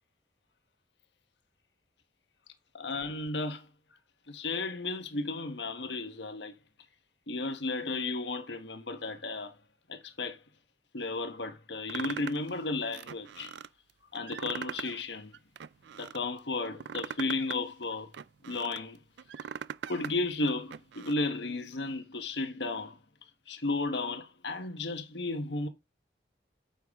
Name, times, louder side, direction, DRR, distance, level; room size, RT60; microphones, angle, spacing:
voice 1, 2.7-3.7 4.3-6.5 7.3-9.5 9.9-10.4 10.9-13.6 14.1-15.3 16.0-18.1 18.4-19.0 19.9-23.0 23.5-25.7, left 3 dB, 80° left, 1.3 m, -34 dB
sound 1, 11.9-12.5 12.9-13.7 14.1-15.0 15.3-16.2 16.6-18.8 19.2-20.1 20.5-21.1, right 7 dB, 75° right, 0.4 m, -41 dB
9.2 x 7.0 x 3.6 m
head